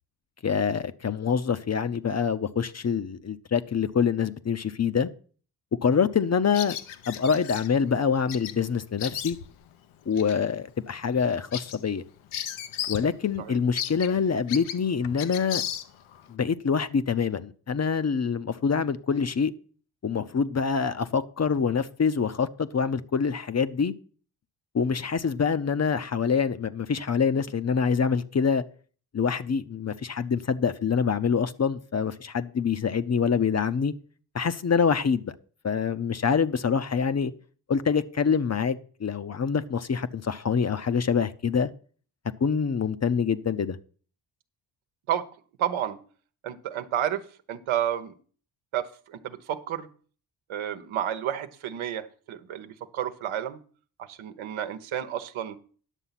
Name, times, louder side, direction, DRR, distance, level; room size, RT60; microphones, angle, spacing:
voice 1, 0.4-5.1 5.8-6.8 7.1-9.4 10.1-12.0 12.9-15.6 16.3-19.5 20.0-23.9 24.7-28.6 29.1-33.9 34.3-35.3 35.6-37.3 37.7-41.7 42.4-43.8, left 6 dB, 35° left, 0.7 m, -25 dB
Bird vocalization bird call bird song, 6.5-7.7 8.3-8.6 8.8-9.6 10.1-10.4 10.8-10.9 11.2-13.1 13.4-13.5 13.8-16.2, left 10 dB, 80° left, 0.9 m, -35 dB
voice 2, 45.6-46.0 46.4-47.2 47.5-48.2 48.7-49.9 50.5-53.6 54.1-55.6, right 10 dB, 80° right, 1.1 m, -31 dB
10.0 x 6.9 x 5.8 m
supercardioid pair, 55°, 48 cm